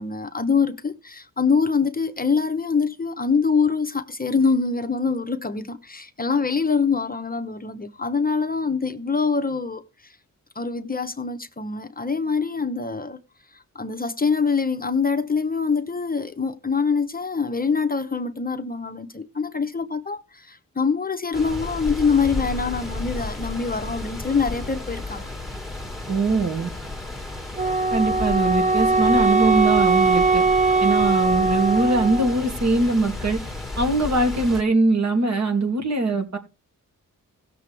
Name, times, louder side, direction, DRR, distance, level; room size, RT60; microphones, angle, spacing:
voice 1, 0.0-10.2 10.5-13.2 13.5-25.3, left 5 dB, 25° left, 0.9 m, -24 dB
sound 1, 21.3-34.6, left 2 dB, ahead, 1.9 m, -33 dB
voice 2, 26.1-26.7 27.9-30.4 30.8-33.4 33.8-36.4, right 2 dB, 55° right, 2.6 m, -21 dB
Wind instrument woodwind instrument, 27.6-32.4, right 3 dB, 20° right, 0.6 m, -20 dB
17.0 x 6.8 x 3.4 m
cardioid pair, 75°, 34 cm